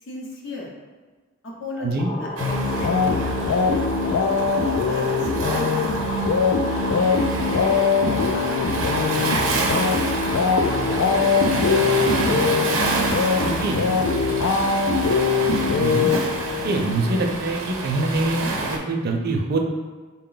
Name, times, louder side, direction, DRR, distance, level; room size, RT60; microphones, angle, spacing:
voice 1, 0.0-0.7 1.4-4.1 4.9-6.1 6.5-7.8 8.1-8.8 10.6-10.8 11.1-11.8 13.3-14.8 16.9-17.0, left 1 dB, 60° left, -3 dB, 0.8 m, -38 dB
voice 2, 1.8-2.1 13.4-13.8 15.8-16.1 16.6-19.6, right 2 dB, 50° right, 2 dB, 0.5 m, -24 dB
sound 1, 2.0-11.5, left 1 dB, 20° left, 0.5 m, -32 dB
sound 2, 2.4-16.7, left 5 dB, 85° left, 0.3 m, -22 dB
Waves surf, 2.4-18.8, right 3 dB, 90° right, 0.6 m, -28 dB
4.0 x 2.2 x 3.8 m, 1.4 s
head